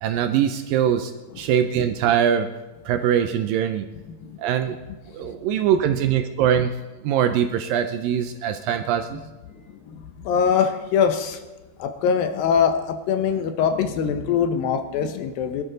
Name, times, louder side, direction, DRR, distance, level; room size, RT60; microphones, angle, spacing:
voice 1, 0.0-2.5 2.9-3.9 4.4-4.8 5.1-6.7 7.0-9.2, right 9 dB, 80° right, 8 dB, 2.1 m, -22 dB
voice 2, 4.1-4.4 9.5-11.4 11.8-15.6, left 7 dB, 75° left, 8 dB, 2.5 m, -23 dB
22.0 x 12.5 x 3.9 m, 1.1 s
omnidirectional pair, 4.5 m